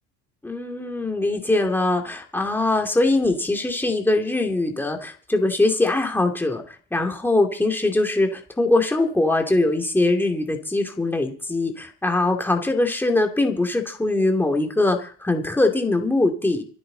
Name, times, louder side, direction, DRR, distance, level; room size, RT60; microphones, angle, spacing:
voice 1, 0.4-16.6, left 2 dB, 5° left, 3 dB, 2.5 m, -22 dB
26.0 x 9.7 x 4.0 m, 0.43 s
cardioid pair, 140°, 34 cm